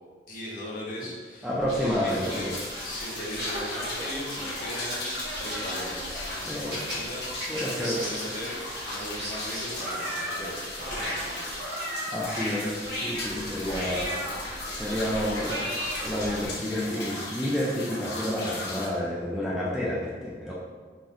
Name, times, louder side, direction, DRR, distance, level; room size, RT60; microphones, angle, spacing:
voice 1, 0.3-1.5 1.8-2.6 2.8-8.6 8.8-10.5 10.9-11.6 13.6-14.4 14.8-15.7, left 1 dB, 50° left, -5 dB, 0.9 m, -39 dB
voice 2, 1.4-2.5 6.5-6.7 7.5-8.0 12.1-14.1 14.8-15.5 16.0-20.5, equal, 5° right, -6 dB, 0.4 m, -29 dB
sound 1, 1.6-16.5, equal, 70° right, 1.2 m, -36 dB
sound 2, 2.1-18.9, left 2 dB, 75° left, 0.9 m, -37 dB
3.8 x 3.1 x 2.6 m, 1.5 s
head